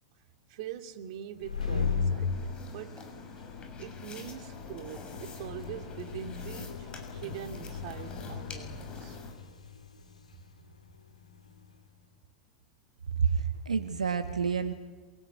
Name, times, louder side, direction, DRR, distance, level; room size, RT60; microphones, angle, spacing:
voice 1, 0.5-3.0 3.8-9.2, right 10 dB, 55° right, 2.9 m, -43 dB
sound 1, 1.3-11.7, left 5 dB, 85° left, 3.2 m, -37 dB
sound 2, 1.6-9.3, left 4 dB, 25° left, 7.1 m, -47 dB
voice 2, 13.2-14.7, right 6 dB, 85° right, 1.6 m, -28 dB
27.5 x 22.5 x 9.5 m
figure-of-eight pair, 90°, 4 cm